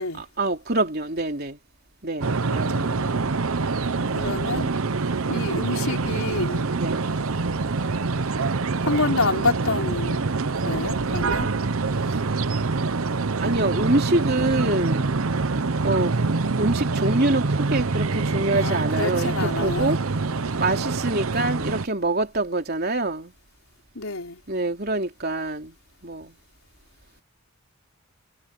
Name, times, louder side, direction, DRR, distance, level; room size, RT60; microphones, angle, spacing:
voice 1, 0.4-1.6 2.0-2.9 6.7-7.0 12.1-12.2 13.4-15.3 15.8-16.1 16.5-20.0 20.6-23.3 24.5-25.8 26.0-26.4, right 2 dB, 45° right, 3.6 m, -25 dB
sound 1, 2.2-21.9, right 3 dB, 75° right, 0.8 m, -25 dB
voice 2, 2.5-3.3 4.1-4.7 5.3-6.7 8.8-10.3 10.6-11.5 18.5-20.0 23.9-24.4, left 3 dB, 75° left, 4.4 m, -28 dB
head